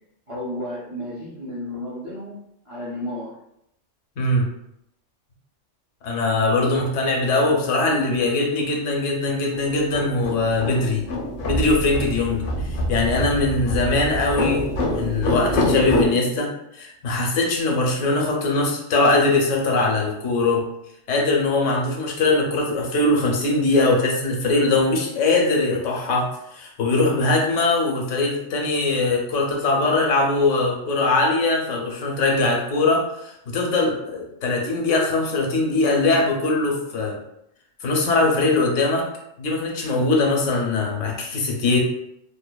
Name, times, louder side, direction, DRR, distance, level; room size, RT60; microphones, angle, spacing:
voice 1, 0.3-2.4 2.6-3.4, left 1 dB, 45° right, -7 dB, 0.4 m, -32 dB
voice 2, 4.2-4.5 6.0-11.0 11.5-20.6 21.1-37.2 37.8-39.0 39.4-41.8, left 2 dB, 85° left, 0 dB, 1.0 m, -21 dB
sound 1, 9.5-16.1, left 1 dB, 60° left, 0.6 m, -26 dB
2.8 x 2.1 x 2.2 m, 0.79 s
omnidirectional pair, 1.2 m